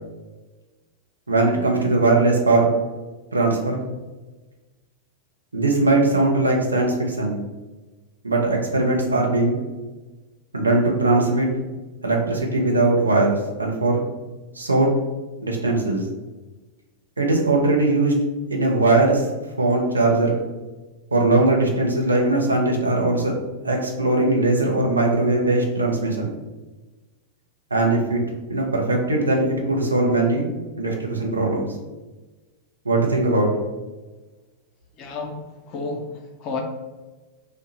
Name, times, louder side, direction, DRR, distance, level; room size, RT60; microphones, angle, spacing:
voice 1, 1.3-2.7 3.3-3.8 5.5-7.4 8.2-9.6 10.5-11.5 12.0-14.0 14.5-14.9 15.4-16.0 17.2-18.1 18.5-19.3 19.6-20.4 21.1-23.3 23.6-26.3 27.7-28.2 28.5-30.5 30.8-31.7 32.8-33.5, right 2 dB, 80° right, 0 dB, 0.5 m, -20 dB
voice 2, 35.0-35.4 35.7-36.6, left 4 dB, 40° left, 2 dB, 0.5 m, -31 dB
2.6 x 2.1 x 3.0 m, 1.2 s
figure-of-eight pair, 90°, 0 cm